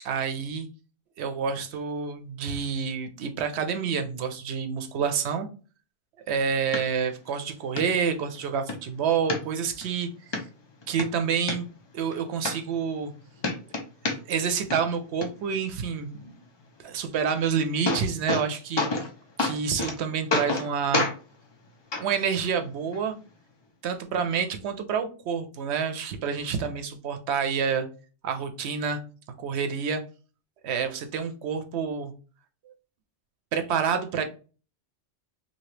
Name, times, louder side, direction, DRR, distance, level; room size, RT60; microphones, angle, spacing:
voice 1, 0.0-0.7 1.2-5.5 6.3-10.1 10.9-11.7 11.9-13.1 14.3-16.3 16.8-18.8 19.4-21.1 22.0-23.1 23.8-27.9 28.2-29.0 29.4-30.0 30.6-32.1 33.5-34.2, right 6 dB, 75° right, 7 dB, 0.8 m, -28 dB
sound 1, 6.7-6.8 7.3-7.4 7.8-7.9 8.3-8.8 9.3-9.9 10.3-10.4 10.8-11.6 12.1-12.2 12.4-13.1 13.4-14.5 14.7-15.3 17.3-17.4 17.6-18.5 18.8-19.1 19.4-20.0 20.3-20.7 20.9-21.2 21.9-22.0 22.9-23.0, left 3 dB, 50° left, 0.3 m, -28 dB
2.8 x 2.7 x 3.1 m, 0.36 s
omnidirectional pair, 1.2 m